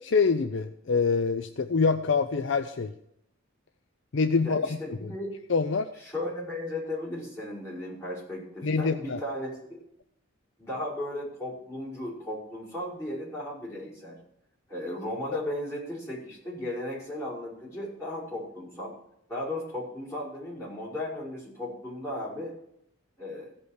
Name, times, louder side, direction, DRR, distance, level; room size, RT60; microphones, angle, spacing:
voice 1, 0.0-2.9 4.1-4.7 5.0-5.1 5.5-5.9 8.6-9.2, left 4 dB, 60° left, 10 dB, 0.5 m, -25 dB
voice 2, 4.4-5.3 6.0-9.8 10.6-14.2 14.7-18.9 19.3-22.5 23.2-23.5, left 1 dB, 10° left, -9 dB, 5.3 m, -35 dB
15.5 x 5.4 x 6.5 m, 0.78 s
head